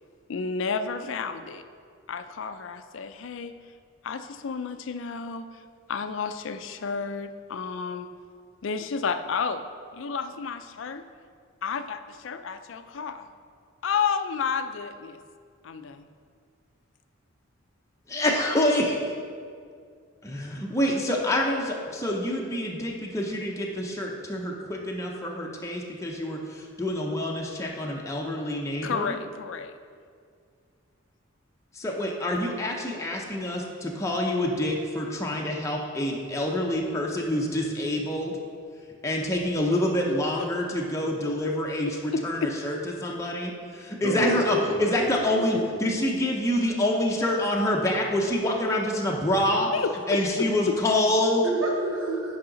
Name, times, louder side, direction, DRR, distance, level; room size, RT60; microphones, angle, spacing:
voice 1, 0.3-1.6 2.1-3.5 4.0-5.5 5.9-8.1 8.6-9.6 9.9-11.0 11.6-13.3 13.8-15.2 15.6-16.0 28.8-29.7 42.1-42.5 49.7-50.4, left 5 dB, 65° left, 10 dB, 0.4 m, -31 dB
voice 2, 18.1-19.1 20.2-29.2 31.7-38.3 39.0-49.7 50.1-51.4, left 1 dB, 15° left, -1 dB, 0.6 m, -27 dB
voice 3, 44.0-45.6 51.4-52.4, right 1 dB, 75° right, -1 dB, 1.0 m, -29 dB
10.5 x 4.8 x 3.9 m, 2.2 s
head